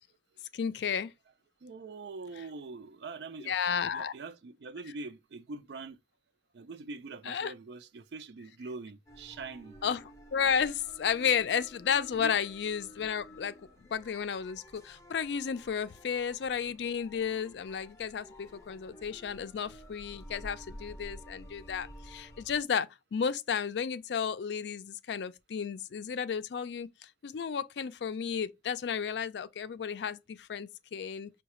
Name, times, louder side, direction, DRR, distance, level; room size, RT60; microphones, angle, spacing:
voice 1, 0.5-1.1 3.5-4.1 7.3-7.5 9.8-13.5 13.9-31.3, left 7 dB, 70° left, 0.4 m, -33 dB
voice 2, 1.6-3.6 3.9-6.0 6.5-9.8 12.1-12.4 18.5-18.6, right 3 dB, 65° right, 0.4 m, -43 dB
sound 1, 9.1-22.6, equal, 15° left, 0.6 m, -51 dB
5.5 x 2.3 x 2.9 m
head